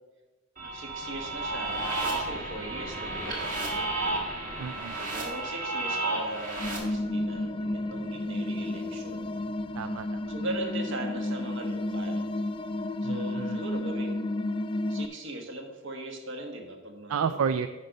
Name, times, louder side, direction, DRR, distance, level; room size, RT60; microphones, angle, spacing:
sound 1, 0.6-6.8, right 2 dB, 40° right, 1.7 m, -32 dB
voice 1, 0.6-4.1 4.9-9.3 10.3-12.3 13.0-14.3 14.9-17.6, right 1 dB, 60° right, 3 dB, 1.3 m, -39 dB
voice 2, 4.6-5.0 9.7-10.2 13.0-13.6 17.1-17.7, right 6 dB, 75° right, 11 dB, 0.4 m, -31 dB
sound 2, 6.6-15.1, left 1 dB, 25° left, 0.3 m, -32 dB
9.4 x 5.1 x 5.3 m, 1.2 s
head